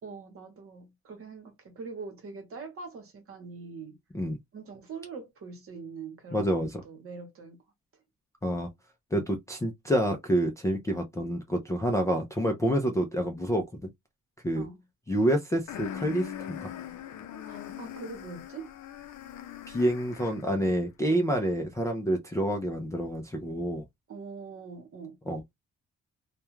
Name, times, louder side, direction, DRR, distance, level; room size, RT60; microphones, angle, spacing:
voice 1, 0.0-4.0 4.5-7.6 14.5-14.8 17.5-18.7 20.1-20.7 24.1-25.2, right 4 dB, 45° right, 1.0 m, -43 dB
voice 2, 6.3-6.8 8.4-8.7 9.1-13.6 14.4-14.7 15.1-16.7 19.7-23.8 25.3-25.5, equal, 10° left, 0.3 m, -28 dB
sound 1, 15.7-20.6, left 9 dB, 70° left, 0.5 m, -41 dB
2.3 x 2.2 x 3.0 m
cardioid pair, 165°, 30 cm